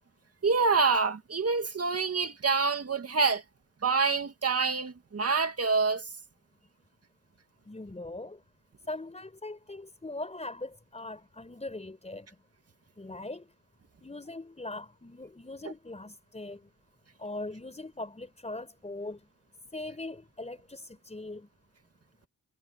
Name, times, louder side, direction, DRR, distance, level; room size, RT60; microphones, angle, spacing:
voice 1, 0.4-3.4 3.8-6.0, right 4 dB, 40° right, 2.1 m, -26 dB
voice 2, 7.6-8.4 8.9-12.3 13.0-13.5 14.0-16.7 17.2-19.3 19.7-21.5, left 2 dB, 20° left, 4.6 m, -40 dB
cardioid pair, 85°, 36 cm